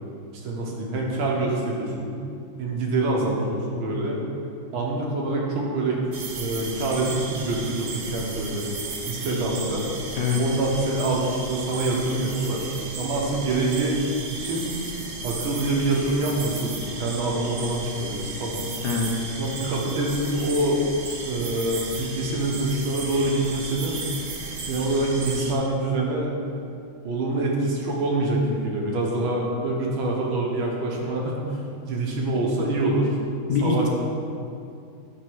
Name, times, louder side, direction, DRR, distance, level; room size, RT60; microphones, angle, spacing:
voice 1, 0.4-2.1 2.6-4.2 4.7-6.0 6.3-8.7 9.1-9.8 10.4-12.6 13.0-14.7 15.2-18.7 19.4-20.8 21.3-24.1 24.7-26.3 27.0-31.6 31.9-33.1 33.6-33.9, right 2 dB, 75° right, -2 dB, 2.0 m, -25 dB
sound 1, 6.1-25.5, right 3 dB, 55° right, 0.9 m, -35 dB
voice 2, 18.8-19.3 33.5-33.9, left 5 dB, 65° left, 0 dB, 1.1 m, -24 dB
9.5 x 4.0 x 6.2 m, 2.5 s
omnidirectional pair, 2.3 m